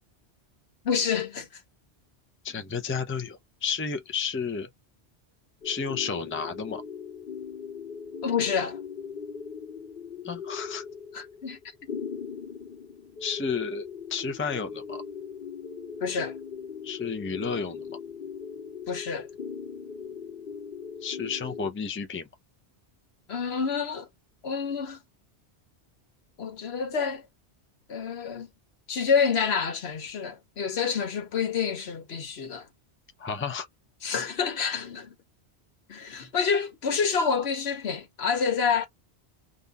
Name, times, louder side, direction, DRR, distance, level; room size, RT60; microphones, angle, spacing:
voice 1, 0.8-1.6 8.2-8.8 11.1-11.6 16.0-16.4 18.9-19.3 23.3-24.1 24.4-25.0 26.4-27.3 27.9-28.5 28.9-32.7 34.0-35.1 35.9-38.9, left 6 dB, 70° left, 1.2 m, -28 dB
voice 2, 2.4-4.7 5.6-6.8 10.2-10.8 13.2-15.0 16.8-18.0 21.0-22.3 33.2-33.7, left 5 dB, 15° left, 0.5 m, -32 dB
sound 1, 5.6-21.7, left 6 dB, 55° left, 0.8 m, -39 dB
3.5 x 2.6 x 4.0 m
omnidirectional pair, 1.1 m